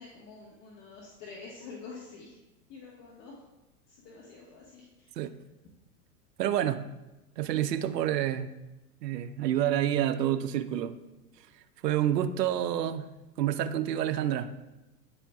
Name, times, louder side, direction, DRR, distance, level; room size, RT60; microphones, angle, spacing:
voice 1, 0.0-2.4 2.7-3.4 3.9-4.8, left 4 dB, 50° left, -4 dB, 1.5 m, -47 dB
voice 2, 6.4-6.8 7.4-8.5 9.0-10.9 11.8-13.1 13.4-14.5, right 11 dB, 85° right, 11 dB, 0.6 m, -28 dB
9.6 x 4.4 x 2.3 m, 1.0 s
hypercardioid pair, 105°, 47 cm